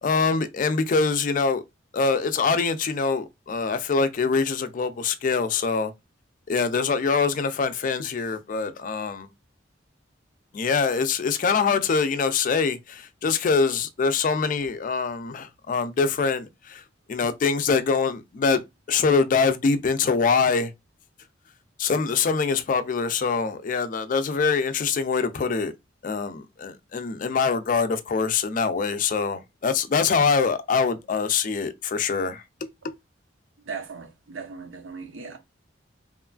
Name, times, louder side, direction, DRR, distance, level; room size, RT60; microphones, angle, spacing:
voice 1, 0.0-1.6 1.9-5.9 6.5-9.3 10.5-16.8 17.1-20.7 21.8-25.7 26.0-32.4, left 5 dB, 45° left, 0.3 m, -24 dB
voice 2, 33.7-35.4, right 5 dB, 90° right, 0.6 m, -38 dB
3.0 x 2.3 x 2.2 m
head